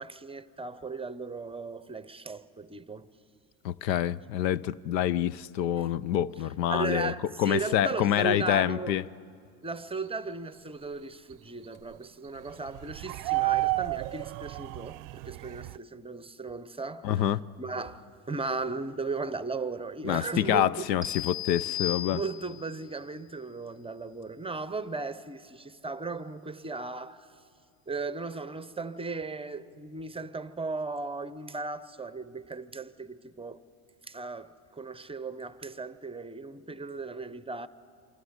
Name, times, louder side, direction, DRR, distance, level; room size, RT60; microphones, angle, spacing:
voice 1, 0.0-3.1 5.8-5.9 6.4-9.0 9.6-17.3 17.6-20.8 22.1-27.3 27.9-33.6 34.0-37.7, right 3 dB, 10° right, 0.8 m, -36 dB
voice 2, 3.6-7.1 7.4-9.0 17.0-17.4 20.0-22.2, left 11 dB, 90° left, 0.7 m, -27 dB
sound 1, 12.8-15.7, right 19 dB, 60° right, 0.6 m, -30 dB
sound 2, 21.0-22.7, left 11 dB, 15° left, 3.6 m, -35 dB
27.0 x 25.5 x 8.2 m
supercardioid pair, 90°, 49 cm